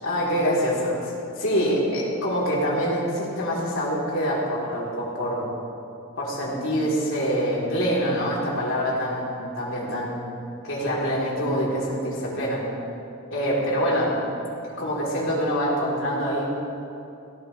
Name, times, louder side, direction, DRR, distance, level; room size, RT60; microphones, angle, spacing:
voice 1, 0.0-5.5 6.2-10.3 10.6-12.7 13.3-14.2 14.6-16.5, equal, 60° left, -6 dB, 4.2 m, -25 dB
19.0 x 16.5 x 3.5 m, 2.7 s
head